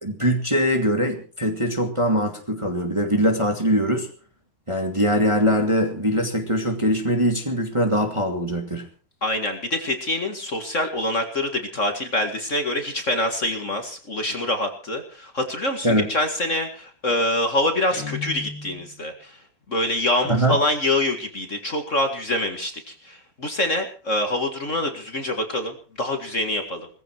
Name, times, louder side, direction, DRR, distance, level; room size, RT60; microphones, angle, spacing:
voice 1, 0.0-4.1 4.7-8.9 15.8-16.1 20.3-20.6, equal, 15° right, 4 dB, 2.0 m, -22 dB
voice 2, 9.2-19.4 19.7-26.9, left 1 dB, 35° left, 6 dB, 2.2 m, -25 dB
Guitar, 17.9-19.1, left 6 dB, 55° left, 2.8 m, -35 dB
19.0 x 15.0 x 4.6 m, 0.38 s
omnidirectional pair, 2.4 m